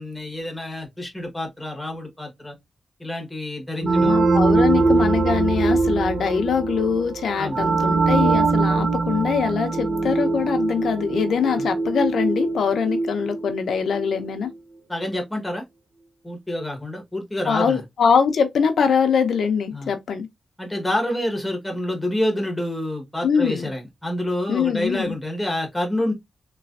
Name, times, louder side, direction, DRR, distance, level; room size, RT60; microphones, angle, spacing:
voice 1, 0.0-2.5 3.0-4.2 4.5-4.9 7.4-7.6 11.5-11.7 14.9-15.6 16.2-17.8 19.7-19.9 20.6-26.1, left 1 dB, 5° left, 1.1 m, -28 dB
voice 2, 3.8-14.5 17.5-20.3 23.2-23.7 24.5-25.2, left 6 dB, 80° left, 0.6 m, -23 dB
sound 1, 3.8-14.3, right 3 dB, 40° right, 0.5 m, -22 dB
3.3 x 3.0 x 2.4 m
wide cardioid pair, 165°, 0 cm